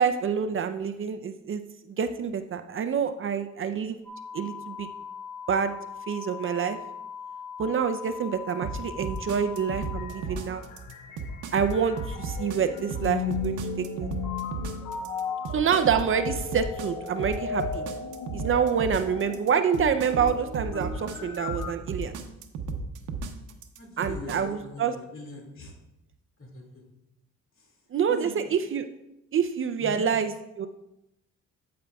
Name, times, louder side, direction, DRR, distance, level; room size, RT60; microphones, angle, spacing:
voice 1, 0.0-1.6 1.9-4.0 4.3-4.9 5.5-5.7 6.1-6.8 7.6-10.6 11.5-14.1 15.5-17.8 18.3-22.1 24.0-24.9 27.9-28.8 29.3-30.7, right 7 dB, 45° right, 9 dB, 0.5 m, -27 dB
sound 1, 4.0-10.1, left 7 dB, 10° left, 2.0 m, -40 dB
sound 2, 8.6-24.4, right 4 dB, 75° right, 0.8 m, -34 dB
sound 3, 10.0-21.7, left 6 dB, 85° left, 0.8 m, -36 dB
voice 2, 23.8-25.8 26.4-26.8 27.6-27.8 28.1-28.5 29.8-30.1, left 2 dB, 45° left, 0 dB, 2.3 m, -42 dB
8.6 x 8.5 x 2.3 m, 0.87 s
cardioid pair, 90°, 30 cm